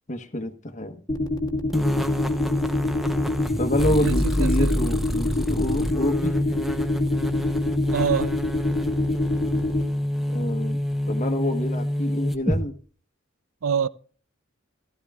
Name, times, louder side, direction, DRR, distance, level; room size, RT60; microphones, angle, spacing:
voice 1, 0.1-1.0 3.6-6.3 10.3-12.7, left 1 dB, 40° left, 1.2 m, -27 dB
sound 1, 1.1-9.8, left 2 dB, 20° left, 1.8 m, -26 dB
sound 2, 1.7-12.6, left 1 dB, ahead, 0.8 m, -27 dB
voice 2, 4.0-4.7 7.9-8.3 13.6-13.9, right 6 dB, 90° right, 0.5 m, -25 dB
15.5 x 13.5 x 2.4 m
head